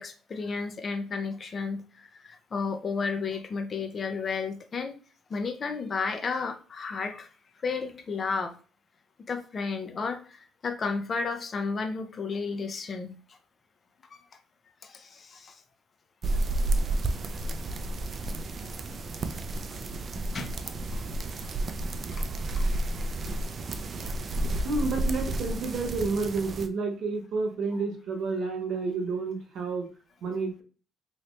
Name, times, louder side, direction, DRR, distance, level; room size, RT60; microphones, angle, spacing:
voice 1, 0.0-4.9 5.3-7.3 7.6-8.5 9.3-13.1 14.1-14.2 14.8-15.6 20.2-20.5 22.1-22.2 22.6-22.7 23.2-23.4, left 4 dB, 35° left, 6 dB, 0.6 m, -33 dB
sound 1, 16.2-26.7, right 2 dB, 40° right, 0.4 m, -31 dB
voice 2, 24.6-29.9 30.2-30.6, right 3 dB, 60° right, 3 dB, 0.9 m, -30 dB
3.2 x 2.8 x 3.1 m, 0.38 s
cardioid pair, 110°, 0 cm